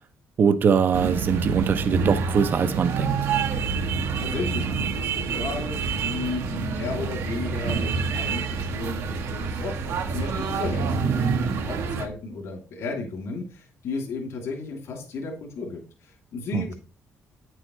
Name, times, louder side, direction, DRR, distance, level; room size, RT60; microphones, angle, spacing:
voice 1, 0.4-3.1 16.5-16.7, right 6 dB, 40° right, 0.7 m, -22 dB
sound 1, 0.9-12.1, right 5 dB, 75° right, 1.4 m, -27 dB
voice 2, 4.2-16.7, left 3 dB, 70° left, 2.9 m, -34 dB
9.0 x 7.7 x 3.2 m
cardioid pair, 140°, 5 cm